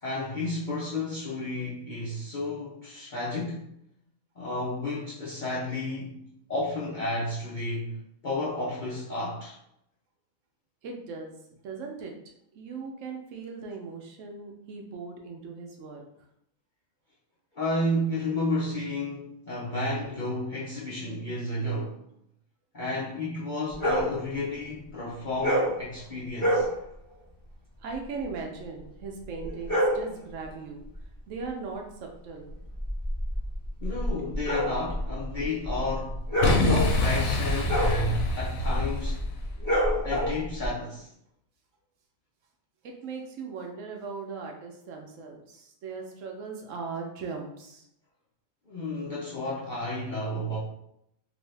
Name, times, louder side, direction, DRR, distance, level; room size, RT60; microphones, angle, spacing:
voice 1, 0.0-3.6 4.4-6.2 6.5-8.0 8.2-9.6 17.5-22.0 22.7-26.7 33.8-39.2 40.0-41.1 48.7-50.6, left 1 dB, 55° left, -7 dB, 0.5 m, -32 dB
voice 2, 10.8-11.3 11.6-12.1 12.5-16.0 19.6-19.7 27.8-30.9 31.3-32.5 34.2-34.3 42.8-47.9, right 4 dB, 70° right, 2 dB, 0.9 m, -39 dB
sound 1, 23.7-24.1 25.4-25.8 26.3-26.7 29.4-30.1 32.6-40.7, equal, 15° left, 1.0 m, -27 dB
Boom, 36.4-39.4, left 2 dB, 75° left, 1.0 m, -26 dB
2.7 x 2.6 x 3.2 m, 0.76 s
omnidirectional pair, 1.5 m